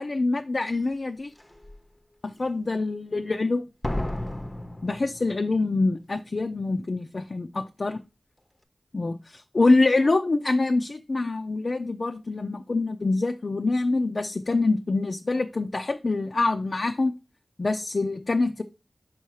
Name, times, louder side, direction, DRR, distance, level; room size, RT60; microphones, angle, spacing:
voice 1, 0.0-1.3 2.2-3.7 4.8-8.0 8.9-17.1 17.6-18.6, left 3 dB, 60° left, 0.5 m, -25 dB
Slam, 0.7-0.8 1.4-1.8 3.8-5.7 6.0-6.1, left 1 dB, 20° left, 0.7 m, -33 dB
5.6 x 4.6 x 4.7 m
wide cardioid pair, 50°, 0 cm